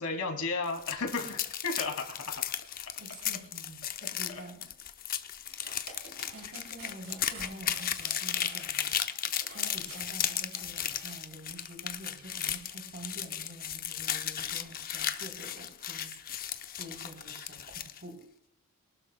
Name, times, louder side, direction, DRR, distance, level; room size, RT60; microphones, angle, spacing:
voice 1, 0.0-2.4, left 3 dB, 75° left, 2 dB, 2.6 m, -33 dB
sound 1, 0.6-18.0, left 10 dB, 40° left, 0.7 m, -35 dB
voice 2, 3.0-4.7 6.3-8.9 9.5-16.1 16.8-18.2, right 1 dB, 50° right, 2 dB, 3.5 m, -47 dB
sound 2, 5.4-11.2, right 4 dB, 65° right, 5.2 m, -50 dB
23.0 x 12.0 x 2.2 m, 0.79 s
head